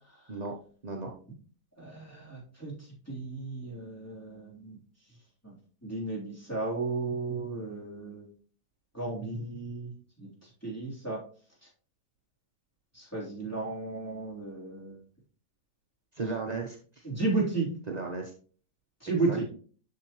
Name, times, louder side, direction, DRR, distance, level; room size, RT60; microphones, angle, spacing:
voice 1, 1.8-2.7 3.1-4.8 5.4-5.5 5.8-8.3 8.9-9.9 10.2-11.2 12.9-15.0 17.0-17.7 19.0-19.4, right 3 dB, 10° left, -6 dB, 3.3 m, -33 dB
voice 2, 16.1-17.1 17.9-18.3 19.3-19.5, right 3 dB, 50° right, 2 dB, 0.5 m, -35 dB
8.5 x 6.3 x 3.0 m, 0.42 s
omnidirectional pair, 1.8 m